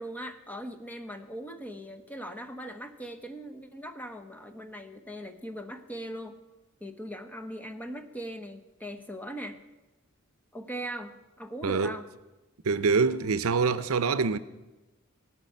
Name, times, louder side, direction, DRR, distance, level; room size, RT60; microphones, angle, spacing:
voice 1, 0.0-6.4 6.8-9.6 10.5-12.1 13.1-13.4, right 1 dB, 10° left, 0.9 m, -40 dB
voice 2, 12.6-14.4, right 4 dB, 75° right, 0.6 m, -25 dB
17.5 x 6.0 x 9.2 m
head